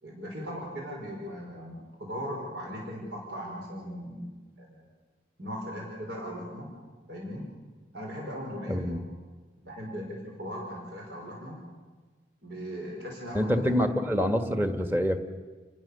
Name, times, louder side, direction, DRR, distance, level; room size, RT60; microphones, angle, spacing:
voice 1, 0.0-4.3 4.6-4.9 5.4-6.7 7.1-7.5 7.9-9.0 9.6-11.6 12.4-13.8, equal, 70° right, -2 dB, 5.4 m, -38 dB
voice 2, 8.7-9.0 13.3-15.2, equal, 10° right, 7 dB, 1.5 m, -26 dB
30.0 x 20.0 x 6.8 m, 1.4 s
head